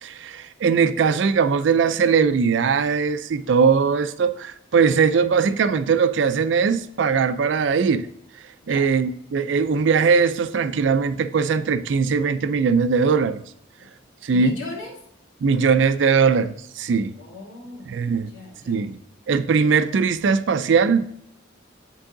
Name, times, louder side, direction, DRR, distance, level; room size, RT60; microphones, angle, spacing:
voice 1, 0.0-8.1 8.7-13.4 14.2-14.5 15.4-17.1 17.9-18.3 18.7-19.0 19.3-21.0, right 5 dB, 70° right, 12 dB, 0.4 m, -20 dB
voice 2, 14.3-14.9 17.1-18.8, left 1 dB, 85° left, -4 dB, 2.6 m, -38 dB
8.9 x 4.6 x 3.8 m, 0.72 s
head